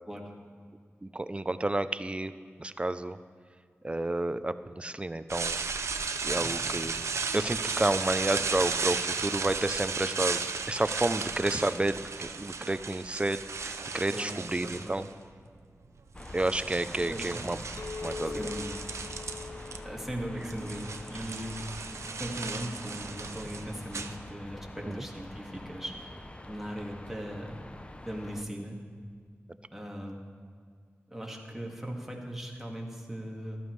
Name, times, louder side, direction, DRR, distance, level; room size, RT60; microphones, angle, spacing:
voice 1, 1.0-2.3 2.6-3.2 3.8-5.6 6.2-7.1 7.3-10.4 10.7-15.1 16.3-17.6 18.0-18.5 24.9-25.0, right 2 dB, 25° right, 13 dB, 0.5 m, -30 dB
sound 1, 5.3-15.2 16.0-19.8 20.1-24.7, right 5 dB, 85° right, 0.5 m, -35 dB
voice 2, 14.6-14.9 17.1-17.4 18.2-18.7 19.8-21.8 22.2-27.6 28.0-28.8 29.7-30.2 31.1-33.6, equal, 5° right, -1 dB, 2.0 m, -39 dB
sound 2, 16.1-28.4, left 1 dB, 25° left, 0.6 m, -45 dB
Chink clink, 17.8-22.3, left 5 dB, 65° left, 0.6 m, -44 dB
14.5 x 12.5 x 3.2 m, 2.1 s
wide cardioid pair, 60°, 5 cm